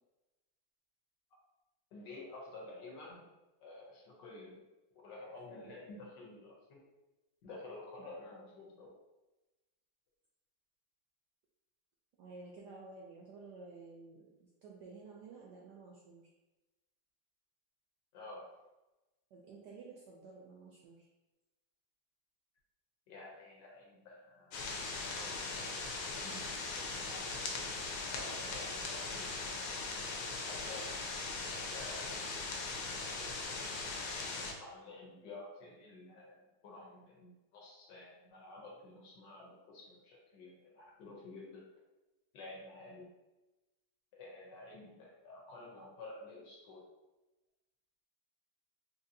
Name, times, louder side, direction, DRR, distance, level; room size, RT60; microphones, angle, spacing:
voice 1, 1.9-3.3 3.6-4.6 5.0-6.8 7.4-8.9 18.1-18.5 23.1-24.6 25.0-27.5 28.1-29.5 30.4-31.1 31.7-32.4 33.2-41.6 42.3-43.1 44.1-46.8, left 2 dB, 65° left, -3 dB, 1.4 m, -51 dB
voice 2, 12.2-14.3 14.6-16.3 19.3-21.1, right 3 dB, 75° right, -3 dB, 1.0 m, -52 dB
sound 1, 24.5-34.5, left 3 dB, 80° left, 1.5 m, -40 dB
4.1 x 2.8 x 2.6 m, 1.1 s
omnidirectional pair, 2.3 m